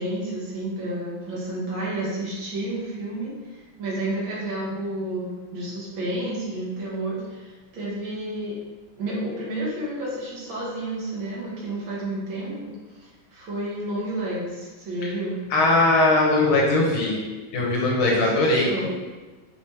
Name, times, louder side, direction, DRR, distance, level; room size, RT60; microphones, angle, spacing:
voice 1, 0.0-8.5 9.0-15.4 18.1-18.9, right 1 dB, 75° right, -6 dB, 2.0 m, -31 dB
voice 2, 15.5-17.2 17.5-18.9, left 2 dB, 80° left, -2 dB, 1.7 m, -20 dB
5.0 x 3.1 x 2.9 m, 1.2 s
omnidirectional pair, 2.2 m